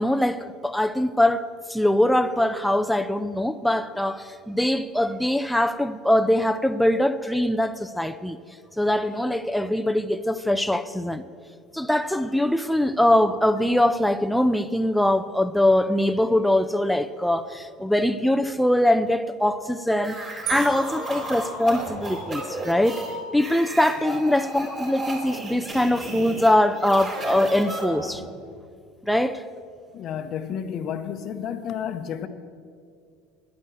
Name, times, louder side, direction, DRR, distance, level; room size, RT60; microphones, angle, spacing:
voice 1, 0.0-8.4 8.8-11.2 11.7-23.0 23.3-28.2 29.1-29.4, left 1 dB, ahead, 0.4 m, -22 dB
sound 1, 20.0-28.2, right 2 dB, 30° right, 4.0 m, -34 dB
sound 2, 20.5-22.2, right 17 dB, 55° right, 0.5 m, -37 dB
voice 2, 29.9-32.3, left 8 dB, 50° left, 0.7 m, -31 dB
10.5 x 9.4 x 7.7 m
supercardioid pair, 105°, 0 cm